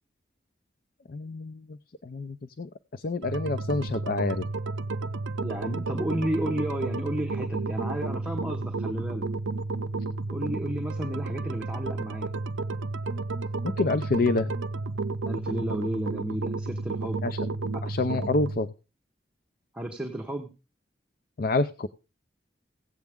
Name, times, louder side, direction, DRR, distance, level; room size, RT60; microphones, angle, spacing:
voice 1, 1.1-4.4 13.6-14.5 17.2-17.5 17.8-18.7 21.4-21.9, left 3 dB, 55° left, 12 dB, 0.5 m, -28 dB
sound 1, 3.2-18.6, right 3 dB, 90° right, 0.5 m, -32 dB
voice 2, 5.4-9.3 10.3-12.3 15.2-17.2 17.7-17.8 19.7-20.5, right 1 dB, 5° right, 1 dB, 1.1 m, -32 dB
16.5 x 8.2 x 3.5 m, 0.32 s
head